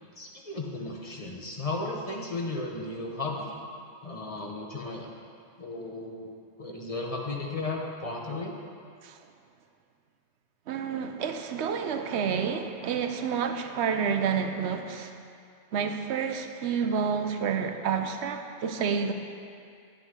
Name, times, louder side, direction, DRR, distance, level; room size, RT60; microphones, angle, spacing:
voice 1, 0.2-3.6 4.0-5.1 5.6-8.5, left 2 dB, 35° left, -1 dB, 1.0 m, -35 dB
voice 2, 10.7-15.1 15.7-19.1, right 6 dB, 75° right, 7 dB, 0.9 m, -29 dB
10.5 x 8.6 x 3.7 m, 2.3 s
omnidirectional pair, 1.1 m